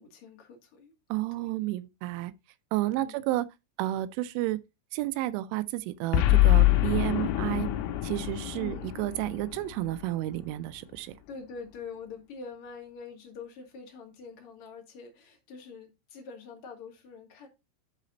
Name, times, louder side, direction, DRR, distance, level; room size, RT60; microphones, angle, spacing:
voice 1, 0.0-0.9 1.3-1.5 2.9-3.3 8.6-8.9 11.0-17.5, left 5 dB, 50° left, 1.7 m, -45 dB
voice 2, 1.1-2.3 2.7-3.5 3.8-4.6 4.9-7.7 8.0-11.2, right 16 dB, 85° right, 2.8 m, -31 dB
Boom, 6.1-10.5, left 15 dB, 90° left, 3.5 m, -25 dB
11.5 x 4.1 x 3.9 m
omnidirectional pair, 5.9 m